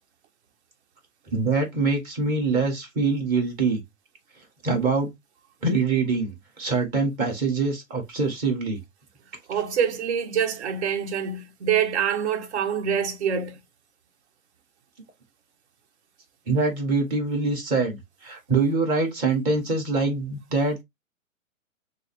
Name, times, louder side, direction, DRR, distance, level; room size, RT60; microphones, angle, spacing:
voice 1, 1.3-3.8 4.6-5.1 5.6-8.8 16.5-18.0 18.2-20.8, right 3 dB, 20° right, 1.3 m, -24 dB
voice 2, 9.5-13.6, right 8 dB, 55° right, 1.1 m, -25 dB
6.0 x 2.0 x 3.4 m
figure-of-eight pair, 120°, 41 cm